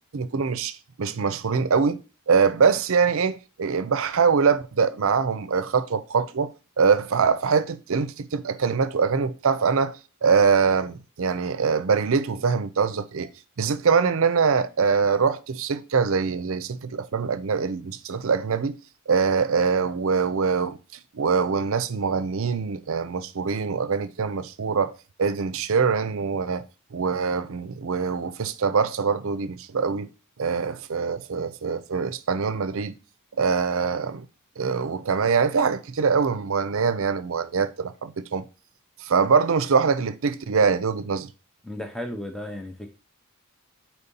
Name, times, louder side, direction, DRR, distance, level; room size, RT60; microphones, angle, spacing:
voice 1, 0.1-6.5 6.8-10.0 10.2-13.3 13.6-18.8 19.1-20.8 21.1-24.9 25.2-26.6 26.9-30.1 30.4-32.9 33.4-34.3 34.6-38.4 39.0-41.3, right 5 dB, 60° right, 0.5 m, -23 dB
voice 2, 41.6-42.9, left 1 dB, ahead, 0.6 m, -34 dB
4.5 x 4.2 x 5.3 m
head